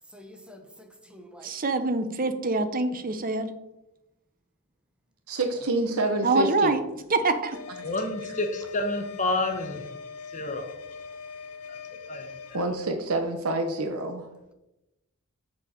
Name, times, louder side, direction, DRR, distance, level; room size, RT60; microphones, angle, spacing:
voice 1, 0.1-1.6 5.6-5.7, equal, 5° right, 1.0 m, -48 dB
voice 2, 1.4-3.5 6.2-6.8 7.1-7.6, right 3 dB, 40° right, 0.8 m, -25 dB
voice 3, 5.3-6.8 12.5-14.3, right 2 dB, 70° right, 0.8 m, -27 dB
sound 1, 7.5-12.6, left 6 dB, 90° left, 0.8 m, -41 dB
voice 4, 7.8-9.8 10.3-10.8 12.1-12.6, left 2 dB, 35° left, 1.1 m, -29 dB
7.0 x 4.3 x 6.6 m
head